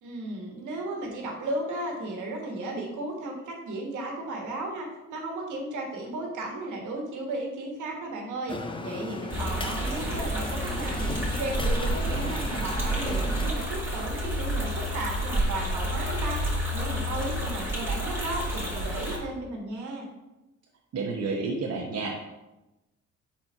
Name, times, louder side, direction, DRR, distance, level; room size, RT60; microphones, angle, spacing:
voice 1, 0.0-16.4 16.7-20.1, right 2 dB, 80° right, 0 dB, 1.5 m, -35 dB
sound 1, 8.5-13.5, left 3 dB, 15° left, 0.5 m, -36 dB
sound 2, 9.3-19.2, right 1 dB, 10° right, 2.3 m, -29 dB
voice 2, 20.9-22.2, right 3 dB, 55° right, -1 dB, 0.9 m, -30 dB
4.4 x 4.2 x 5.4 m, 1.0 s
cardioid pair, 90°, 30 cm